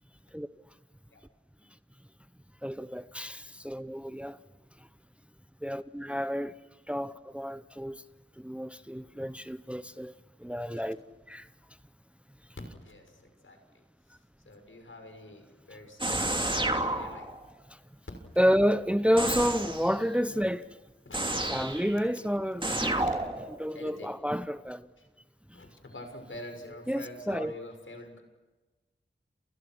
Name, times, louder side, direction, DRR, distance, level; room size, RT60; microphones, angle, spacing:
voice 1, 2.6-4.4 5.6-6.5 6.9-8.0 8.4-10.1 10.4-11.0 11.3-11.4 18.4-20.6 21.5-23.1 23.5-24.9 26.9-27.5, equal, 5° right, 0.9 m, -30 dB
voice 2, 12.8-13.6 14.4-16.6 16.9-17.3 18.3-18.5 21.0-21.2 23.7-24.2 25.5-28.2, left 1 dB, 75° left, 6.4 m, -46 dB
sound 1, 16.0-17.4 19.2-19.9 21.1-22.0 22.6-23.7, right 1 dB, 25° right, 2.9 m, -30 dB
29.5 x 29.5 x 6.2 m
wide cardioid pair, 80°, 21 cm